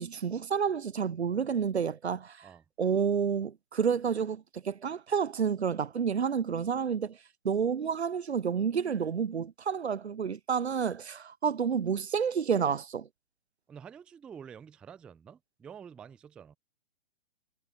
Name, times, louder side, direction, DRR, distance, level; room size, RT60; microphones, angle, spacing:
voice 1, 0.0-2.5 2.8-7.2 7.4-13.1, right 7 dB, 75° right, 0.7 m, -30 dB
voice 2, 13.7-16.6, right 7 dB, 5° right, 0.4 m, -48 dB
figure-of-eight pair, 120°, 32 cm